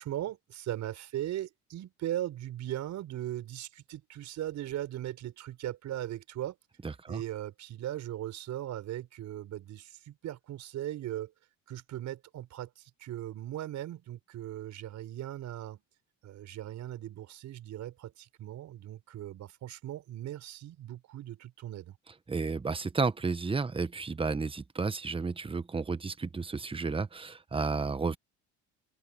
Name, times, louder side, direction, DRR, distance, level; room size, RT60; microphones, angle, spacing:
voice 1, 0.0-6.6 7.1-11.3 11.7-15.8 16.2-21.9, right 12 dB, 60° right, 5.5 m, -38 dB
voice 2, 6.8-7.2 22.3-28.2, right 4 dB, 15° right, 1.3 m, -32 dB
supercardioid pair, 90°, 32 cm